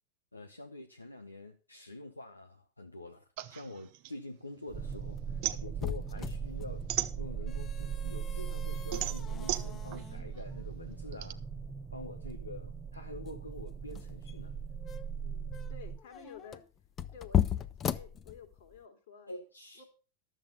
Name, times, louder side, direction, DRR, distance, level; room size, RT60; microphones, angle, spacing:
voice 1, 0.3-6.9 7.2-11.4 11.9-14.5 19.3-19.8, left 2 dB, 80° left, 6 dB, 0.9 m, -46 dB
sound 1, 3.4-4.9 5.2-7.7 8.2-11.3, right 15 dB, 45° right, 0.8 m, -37 dB
sound 2, 4.7-18.8, left 10 dB, 25° left, 0.6 m, -38 dB
sound 3, 4.7-16.0, right 7 dB, 15° right, 0.8 m, -39 dB
voice 2, 15.2-16.6 17.1-19.3 19.8-19.9, left 6 dB, 55° left, 5 dB, 2.6 m, -52 dB
12.5 x 7.4 x 5.5 m, 0.36 s
figure-of-eight pair, 90°, 0 cm